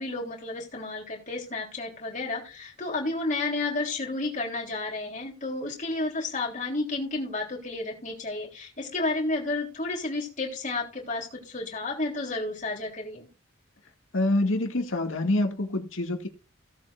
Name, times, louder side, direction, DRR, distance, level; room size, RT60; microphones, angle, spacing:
voice 1, 0.0-13.3, left 2 dB, 35° left, 3.5 m, -31 dB
voice 2, 14.1-16.3, left 1 dB, 75° left, 2.3 m, -26 dB
17.5 x 7.8 x 2.6 m
head